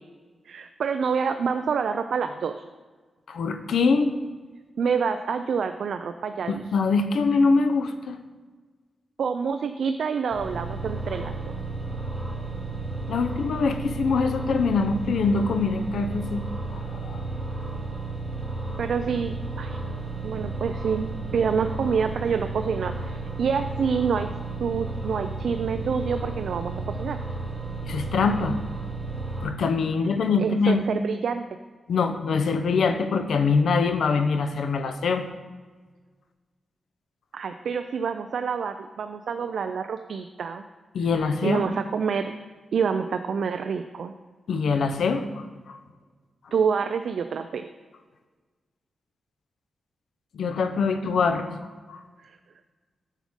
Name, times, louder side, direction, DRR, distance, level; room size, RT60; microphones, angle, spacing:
voice 1, 0.5-2.6 4.8-6.6 9.2-11.6 18.8-19.8 20.2-24.3 24.6-27.2 30.4-31.4 37.3-40.6 41.4-42.3 42.7-44.1 46.5-47.7 52.2-52.4, right 6 dB, 75° right, 8 dB, 0.3 m, -27 dB
voice 2, 3.3-4.1 6.5-8.2 13.1-16.4 16.7-17.2 27.8-28.6 29.4-30.8 31.9-35.2 40.9-41.6 44.5-45.8 50.3-51.5 51.9-52.0, left 4 dB, 80° left, 8 dB, 0.6 m, -24 dB
sound 1, 10.3-29.4, right 3 dB, 20° left, 2.7 m, -33 dB
9.0 x 6.2 x 3.6 m, 1.4 s
wide cardioid pair, 140°, 0 cm